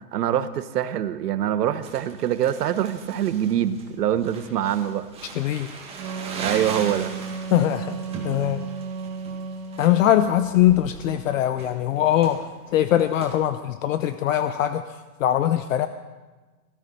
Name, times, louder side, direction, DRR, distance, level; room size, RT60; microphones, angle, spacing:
voice 1, 0.1-5.1 6.4-7.1, right 10 dB, 80° right, 12 dB, 1.1 m, -24 dB
Crumpling crinkling, 1.8-13.3, right 4 dB, 10° right, 1.9 m, -39 dB
voice 2, 5.3-5.7 7.5-8.0 8.2-8.6 9.8-12.4 12.7-14.8 15.2-15.9, left 12 dB, 55° left, 11 dB, 0.6 m, -21 dB
Wind instrument woodwind instrument, 5.7-9.9, right 5 dB, 55° right, 2.7 m, -34 dB
18.0 x 13.0 x 4.1 m, 1.3 s
hypercardioid pair, 150°, 47 cm